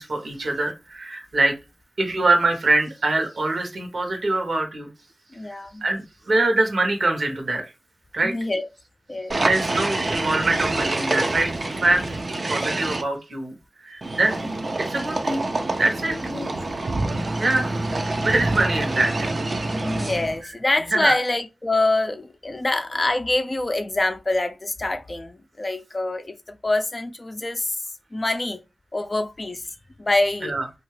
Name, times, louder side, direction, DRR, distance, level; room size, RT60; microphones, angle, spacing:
voice 1, 0.0-1.5 2.0-4.9 5.5-7.6 8.1-8.3 9.4-11.5 11.8-14.4 14.8-15.4 15.7-16.2 17.4-19.3 20.9-21.1 30.4-30.7, right 2 dB, 70° right, 0.8 m, -24 dB
voice 2, 5.3-5.8 8.2-8.7 9.1-9.4 16.2-16.5 19.7-27.8 28.1-28.6 28.9-30.5, left 2 dB, 40° left, 0.4 m, -25 dB
sound 1, 9.3-13.0 14.0-20.4, right 2 dB, 55° right, 0.5 m, -26 dB
2.7 x 2.3 x 3.1 m
cardioid pair, 45°, 0 cm